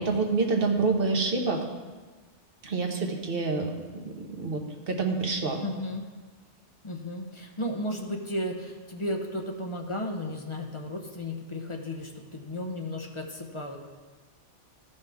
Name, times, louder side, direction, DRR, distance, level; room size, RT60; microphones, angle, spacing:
voice 1, 0.0-1.6 2.6-3.8 4.0-5.6, right 3 dB, 50° right, 2 dB, 1.2 m, -27 dB
voice 2, 5.6-6.0 6.8-13.8, left 1 dB, 30° left, 2 dB, 0.7 m, -34 dB
13.5 x 5.6 x 3.5 m, 1.3 s
omnidirectional pair, 1.2 m